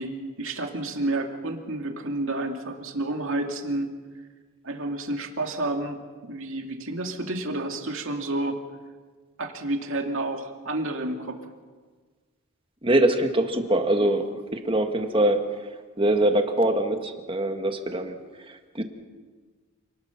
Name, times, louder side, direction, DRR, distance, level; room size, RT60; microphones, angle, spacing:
voice 1, 0.0-3.9 4.6-8.6 9.4-11.4, right 2 dB, 60° right, 3 dB, 2.5 m, -30 dB
voice 2, 12.8-14.3 14.5-15.4 16.0-18.2 18.5-18.8, right 1 dB, 25° right, 5 dB, 1.7 m, -23 dB
28.5 x 19.5 x 5.9 m, 1.4 s
head